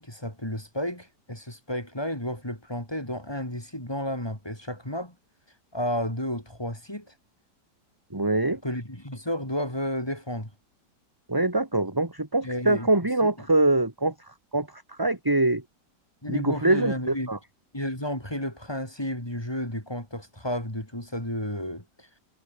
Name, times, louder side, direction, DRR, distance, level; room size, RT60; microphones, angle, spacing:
voice 1, 0.0-5.1 5.7-7.1 8.6-10.5 12.4-12.9 13.2-13.3 16.2-17.3 17.7-22.1, left 1 dB, 15° left, 4.9 m, -32 dB
voice 2, 8.1-8.6 11.3-14.1 14.5-15.6 16.3-17.4, right 2 dB, 10° right, 2.2 m, -24 dB
omnidirectional pair, 1.9 m